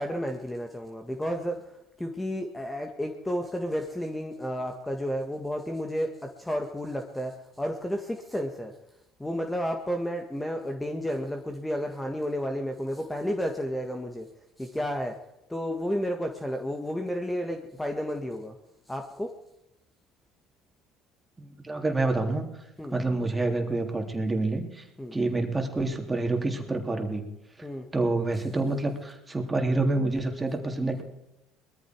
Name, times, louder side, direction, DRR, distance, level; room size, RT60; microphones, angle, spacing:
voice 1, 0.0-1.6 2.0-8.7 9.2-14.3 14.6-15.2 15.5-18.6 18.9-19.3 22.8-23.0 25.0-25.2 27.6-27.9, equal, 10° left, 4 dB, 1.8 m, -32 dB
voice 2, 21.4-22.5 22.9-24.8 25.1-27.2 27.9-31.0, right 2 dB, 15° right, 3 dB, 3.4 m, -27 dB
20.5 x 14.0 x 4.7 m, 0.90 s
supercardioid pair, 80°, 0 cm